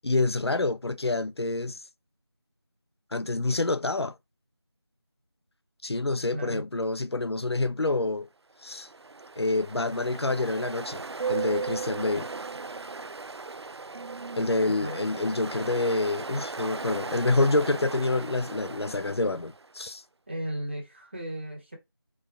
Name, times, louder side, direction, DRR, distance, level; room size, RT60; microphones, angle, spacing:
voice 1, 0.0-1.8 3.1-4.1 5.8-8.3 8.6-8.9 9.4-11.0 11.3-12.3 14.4-20.0, left 2 dB, 85° left, 0.6 m, -27 dB
voice 2, 6.3-6.6 14.6-15.0 20.3-21.8, right 1 dB, 25° right, 1.5 m, -35 dB
Ocean, 8.6-19.7, right 4 dB, 90° right, 0.5 m, -37 dB
4.0 x 3.6 x 3.5 m
figure-of-eight pair, 175°, 13 cm